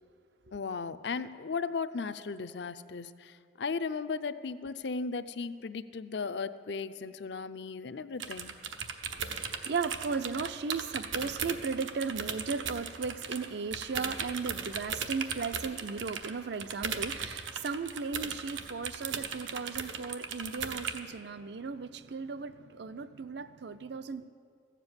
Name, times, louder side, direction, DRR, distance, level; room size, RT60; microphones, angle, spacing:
voice 1, 0.5-8.6, left 4 dB, 65° left, 0.5 m, -36 dB
sound 1, 8.2-13.5 13.7-21.0, right 6 dB, 85° right, 1.0 m, -37 dB
voice 2, 9.0-24.3, right 5 dB, 60° right, 0.5 m, -36 dB
14.5 x 7.5 x 9.7 m
head